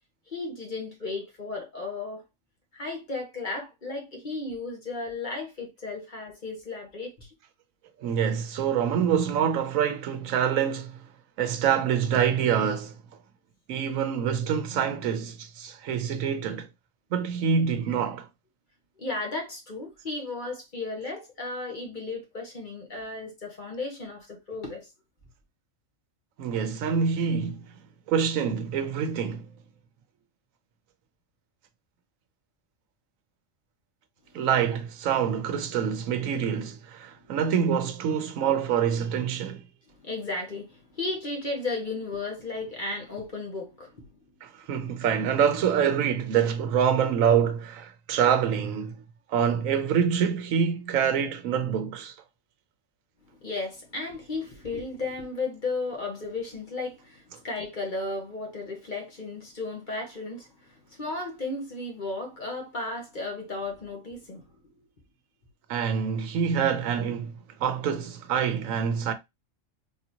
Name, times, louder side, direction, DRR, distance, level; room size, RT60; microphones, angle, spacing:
voice 1, 0.3-2.2 2.7-7.3 19.0-24.9 37.2-37.4 39.9-44.1 53.3-64.8, left 3 dB, 40° left, 1.2 m, -34 dB
voice 2, 8.0-11.0 11.4-13.0 13.7-16.7 17.1-18.3 26.4-27.7 28.1-29.4 34.3-39.6 44.4-49.0 49.3-52.1 65.7-69.1, right 7 dB, 85° right, 1.1 m, -26 dB
3.5 x 2.7 x 2.7 m
omnidirectional pair, 1.4 m